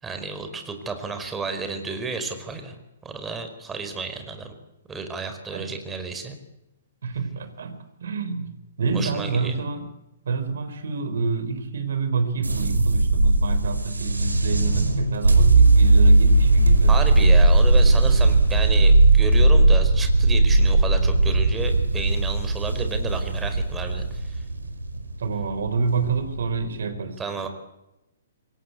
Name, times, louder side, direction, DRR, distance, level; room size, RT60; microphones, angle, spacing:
voice 1, 0.0-4.5 4.9-6.4 8.9-9.5 16.9-24.4 27.2-27.5, right 4 dB, 10° right, 7 dB, 4.8 m, -32 dB
voice 2, 7.0-9.9 10.2-17.4 25.2-27.2, right 4 dB, 65° right, 11 dB, 4.4 m, -28 dB
sound 1, 12.4-26.6, right 2 dB, 85° right, 4.9 m, -18 dB
27.0 x 22.5 x 8.5 m, 0.94 s
figure-of-eight pair, 120°, 0 cm